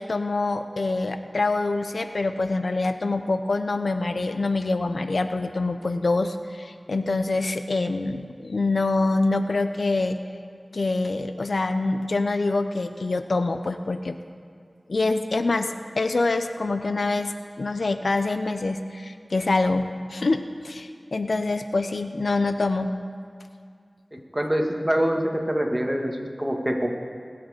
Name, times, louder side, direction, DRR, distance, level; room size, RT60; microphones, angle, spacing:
voice 1, 0.0-10.2 10.7-14.2 14.9-22.9, left 3 dB, 80° left, 9 dB, 0.6 m, -25 dB
voice 2, 24.1-25.2 25.5-26.9, equal, 15° right, 2 dB, 1.7 m, -25 dB
20.0 x 8.6 x 5.1 m, 2.3 s
wide cardioid pair, 50°, 0 cm